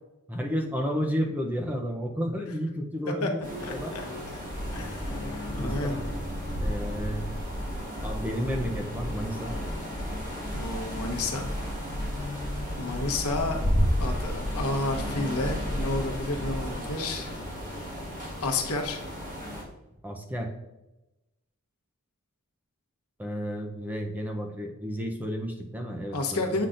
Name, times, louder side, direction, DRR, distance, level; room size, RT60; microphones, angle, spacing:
voice 1, 0.3-3.9 5.5-6.1 6.6-7.3 8.0-9.6 20.0-20.5 23.2-26.6, equal, 10° right, 2 dB, 0.6 m, -32 dB
sound 1, 3.4-19.6, equal, 35° right, 1.6 m, -34 dB
voice 2, 3.6-4.0 4.3-4.4 4.7-5.3 5.5-6.0 10.5-11.5 12.8-13.6 14.0-17.3 18.4-19.0 26.1-26.7, left 2 dB, 80° left, 3 dB, 1.0 m, -31 dB
sound 2, 4.4-16.9, equal, 55° left, 1.4 m, -36 dB
8.2 x 5.7 x 2.5 m, 0.99 s
head